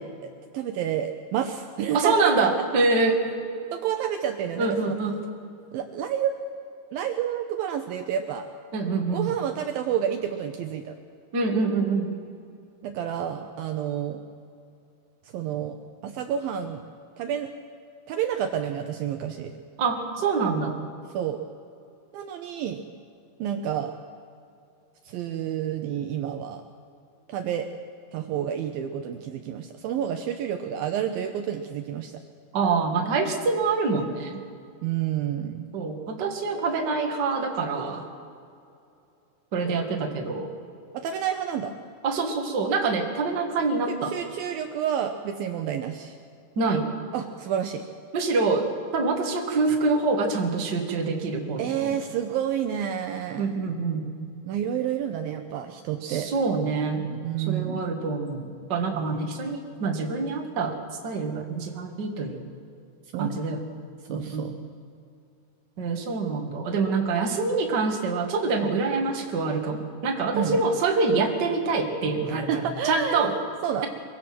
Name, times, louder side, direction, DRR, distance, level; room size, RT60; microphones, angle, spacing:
voice 1, 0.5-2.3 3.7-5.0 5.7-6.4 6.9-8.5 9.1-11.0 12.8-14.2 15.2-15.8 16.0-16.8 17.2-17.5 18.1-19.5 21.1-21.4 22.1-22.8 23.4-23.9 25.1-26.6 27.3-27.7 28.1-32.2 34.8-35.6 40.9-41.7 43.9-46.2 47.1-47.8 51.6-53.6 54.4-56.3 57.2-57.9 63.1-63.3 64.1-64.5 70.3-70.7 72.3-73.3 73.6-73.9, right 9 dB, 75° right, 6 dB, 2.3 m, -29 dB
voice 2, 1.9-3.2 4.6-5.2 8.7-9.3 11.3-12.1 19.8-20.8 32.5-34.4 35.7-38.1 39.5-40.5 42.0-44.1 46.5-46.9 48.1-51.9 53.4-54.1 56.0-57.1 57.5-60.8 61.0-62.4 63.2-63.6 64.1-64.5 65.8-73.4, right 4 dB, 35° right, 2 dB, 1.8 m, -25 dB
23.5 x 23.5 x 6.1 m, 2.5 s
omnidirectional pair, 4.7 m